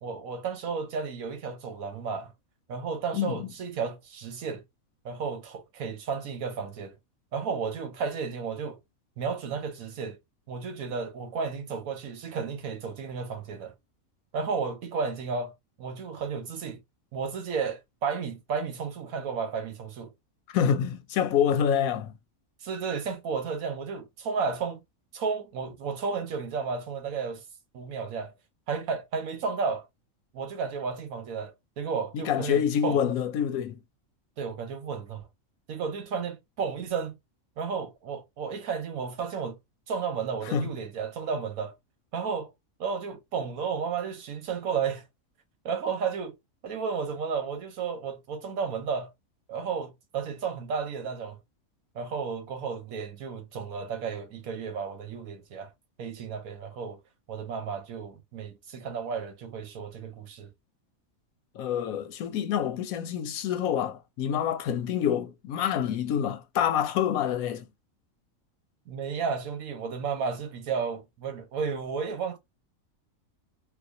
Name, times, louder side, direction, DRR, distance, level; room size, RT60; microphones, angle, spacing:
voice 1, 0.0-2.3 2.7-4.6 5.0-7.0 7.3-8.8 9.2-10.2 10.5-13.7 14.3-16.8 17.1-20.1 22.6-24.8 25.1-27.4 27.7-28.3 28.7-29.9 30.3-33.0 34.4-35.3 35.7-37.2 37.6-39.6 39.9-41.7 42.1-42.5 42.8-45.1 45.6-46.4 46.6-49.1 49.5-51.4 51.9-55.7 56.0-57.0 57.3-60.5 68.9-72.4, right 5 dB, 85° right, 1.3 m, -33 dB
voice 2, 3.1-3.5 20.5-22.1 32.1-33.8 40.5-40.7 61.5-67.7, left 9 dB, 85° left, 1.1 m, -27 dB
4.3 x 2.4 x 2.6 m
omnidirectional pair, 1.5 m